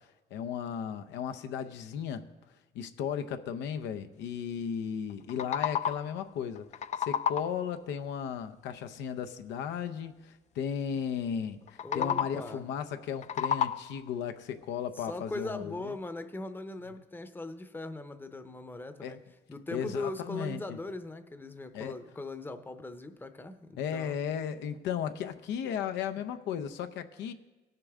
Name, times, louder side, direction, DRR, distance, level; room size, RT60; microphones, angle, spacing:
voice 1, 0.3-2.2 2.7-6.7 7.0-16.0 19.0-19.2 19.7-20.6 21.7-22.0 23.8-27.3, left 8 dB, 85° left, 8 dB, 0.6 m, -35 dB
sound 1, 5.1-6.2 6.6-7.7 11.7-12.6 13.0-14.1, left 8 dB, 40° left, 0.4 m, -32 dB
voice 2, 11.8-12.7 15.0-19.2 19.5-24.2, left 2 dB, 10° left, 10 dB, 0.7 m, -40 dB
17.5 x 6.7 x 3.6 m, 1.1 s
cardioid pair, 85°, 18 cm